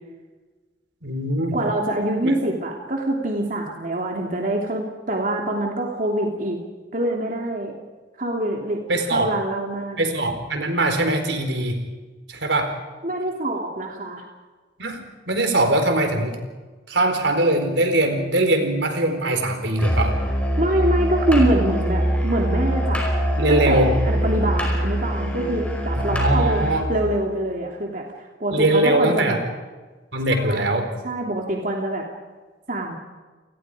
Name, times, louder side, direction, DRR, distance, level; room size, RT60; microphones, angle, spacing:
voice 1, 1.0-1.6 2.2-2.3 8.9-9.3 10.0-11.8 12.3-12.7 14.8-16.4 16.9-20.1 23.4-23.9 26.0-26.9 28.5-29.4 30.1-30.9, right 1 dB, 75° right, 6 dB, 4.4 m, -21 dB
voice 2, 1.5-6.6 6.9-7.7 8.2-8.8 9.1-10.0 13.0-14.2 20.6-23.0 23.5-29.4 30.3-30.8 31.0-32.1 32.7-33.0, right 1 dB, 45° right, 0 dB, 3.0 m, -25 dB
Musical instrument, 19.8-26.9, equal, 5° left, 5.3 m, -23 dB
29.5 x 20.0 x 5.1 m, 1.3 s
head